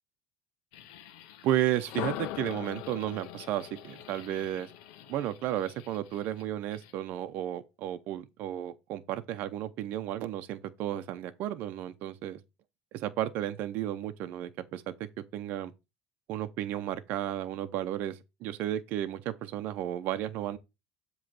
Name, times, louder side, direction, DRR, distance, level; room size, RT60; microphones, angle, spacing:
sound 1, 0.7-7.0, left 11 dB, 85° left, 0.9 m, -53 dB
voice 1, 1.4-4.7 5.1-12.4 12.9-15.7 16.3-20.6, right 12 dB, 60° right, 0.7 m, -33 dB
sound 2, 1.8-5.7, left 16 dB, 65° left, 0.4 m, -41 dB
7.6 x 3.2 x 6.1 m
cardioid pair, 120°, 3 cm